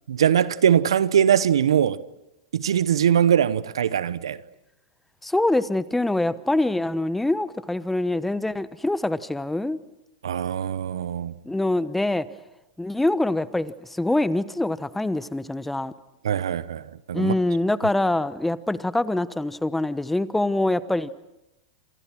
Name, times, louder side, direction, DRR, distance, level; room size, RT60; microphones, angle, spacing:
voice 1, 0.1-2.0 2.5-4.4 10.2-11.3 16.2-16.8 17.1-17.3, right 9 dB, 80° right, 0.9 m, -21 dB
voice 2, 5.2-9.8 11.4-12.2 12.8-15.9 17.1-21.1, left 2 dB, 5° left, 1.1 m, -24 dB
28.0 x 27.0 x 6.2 m
hypercardioid pair, 105°, 3 cm